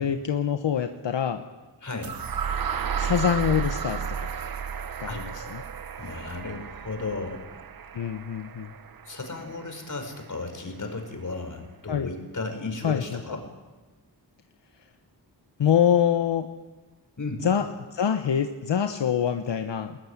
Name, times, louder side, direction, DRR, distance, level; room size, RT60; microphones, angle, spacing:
voice 1, 0.0-1.4 3.0-4.3 5.0-5.6 7.9-8.7 11.9-12.1 12.8-13.2 15.6-16.5 17.4-20.0, left 8 dB, 80° left, 7 dB, 1.2 m, -25 dB
voice 2, 1.8-2.2 5.0-5.2 6.0-7.4 9.1-13.4 17.2-17.5, left 3 dB, 45° left, 5 dB, 5.4 m, -34 dB
sound 1, 2.0-10.0, right 7 dB, 55° right, 0.9 m, -33 dB
21.0 x 20.5 x 9.9 m, 1.2 s
wide cardioid pair, 105°, 43 cm